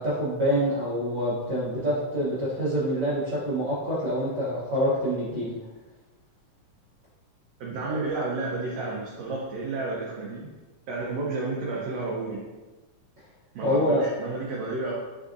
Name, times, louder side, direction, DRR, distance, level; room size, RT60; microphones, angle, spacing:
voice 1, 0.0-5.5 13.6-14.0, equal, 70° right, -12 dB, 1.0 m, -26 dB
voice 2, 7.6-10.4 10.9-12.5 13.5-14.9, right 3 dB, 90° right, -4 dB, 1.4 m, -31 dB
4.8 x 3.5 x 2.5 m, 1.2 s
omnidirectional pair, 3.6 m